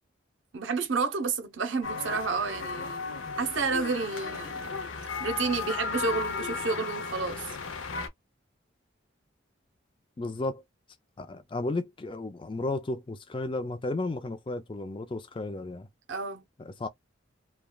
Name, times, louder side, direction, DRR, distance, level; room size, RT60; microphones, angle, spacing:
voice 1, 0.5-3.0 3.4-4.7 5.2-7.6 16.1-16.4, right 4 dB, 80° right, 0.7 m, -30 dB
sound 1, 1.8-8.1, left 5 dB, 85° left, 0.6 m, -35 dB
voice 2, 10.2-10.6 11.2-15.9 16.6-16.9, left 2 dB, 25° left, 0.4 m, -33 dB
3.2 x 2.3 x 2.3 m
head